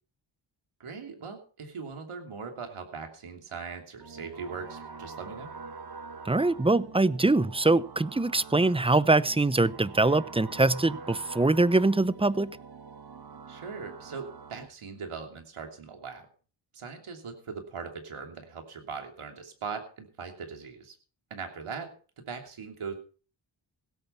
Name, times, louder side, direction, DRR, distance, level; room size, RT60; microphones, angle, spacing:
voice 1, 0.8-5.5 13.5-16.3 16.7-20.9 21.3-22.9, right 5 dB, 85° right, 3.0 m, -40 dB
sound 1, 4.0-14.7, right 4 dB, 50° right, 1.4 m, -45 dB
voice 2, 6.3-12.6, right 2 dB, 10° right, 0.7 m, -23 dB
17.0 x 8.8 x 5.6 m
cardioid pair, 55°, 49 cm